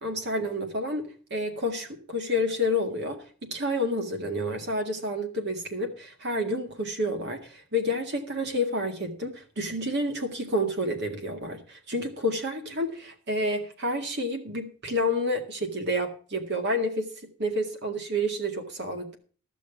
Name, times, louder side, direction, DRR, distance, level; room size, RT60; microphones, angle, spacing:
voice 1, 0.0-17.1 17.4-19.2, left 1 dB, 50° right, 2.1 m, -29 dB
14.0 x 6.2 x 7.1 m
head